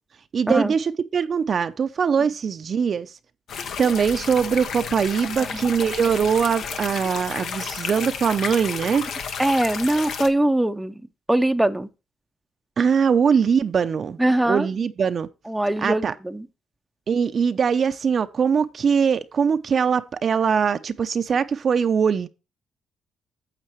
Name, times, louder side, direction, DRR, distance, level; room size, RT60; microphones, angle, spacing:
voice 1, 0.3-3.1 3.8-9.0 12.8-14.2 14.5-15.3 15.8-16.1 17.1-22.3, right 6 dB, 50° right, 0.6 m, -22 dB
sound 1, 3.5-10.3, left 6 dB, 70° left, 1.0 m, -32 dB
voice 2, 9.4-10.9 11.3-11.9 14.2-14.7 15.5-16.5, right 1 dB, 5° right, 0.6 m, -22 dB
9.0 x 7.4 x 3.1 m
cardioid pair, 90°, 0 cm